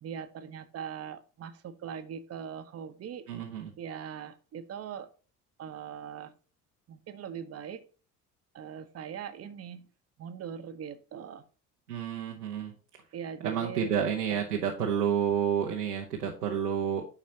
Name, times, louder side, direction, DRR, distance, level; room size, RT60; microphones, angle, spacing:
voice 1, 0.0-3.3 3.8-5.1 5.6-6.3 6.9-7.8 8.5-9.9 10.2-11.5 13.1-13.9 14.6-14.8, right 8 dB, 30° right, 10 dB, 0.9 m, -41 dB
voice 2, 3.3-3.7 11.9-12.7 13.4-17.0, right 8 dB, 80° right, 0 dB, 1.0 m, -30 dB
10.5 x 4.1 x 2.8 m, 0.38 s
figure-of-eight pair, 60°, 46 cm